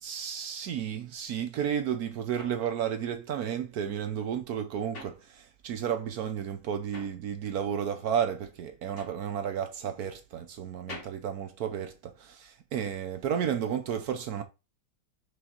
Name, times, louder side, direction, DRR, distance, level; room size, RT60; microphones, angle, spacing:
voice 1, 0.0-14.4, right 8 dB, 65° right, 0.9 m, -32 dB
sound 1, 2.4-5.9 6.2-12.4, left 3 dB, 35° left, 1.7 m, -50 dB
6.4 x 3.9 x 4.3 m
omnidirectional pair, 2.3 m